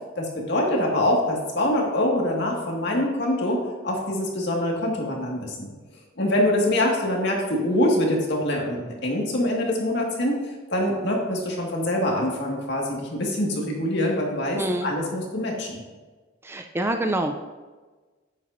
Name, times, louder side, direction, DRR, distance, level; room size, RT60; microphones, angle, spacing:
voice 1, 0.2-5.7 6.2-10.4 10.7-15.8, left 1 dB, 65° left, -1 dB, 1.9 m, -24 dB
voice 2, 14.6-14.9 16.4-17.4, right 1 dB, 10° right, 6 dB, 0.4 m, -26 dB
9.3 x 9.3 x 2.6 m, 1.3 s
head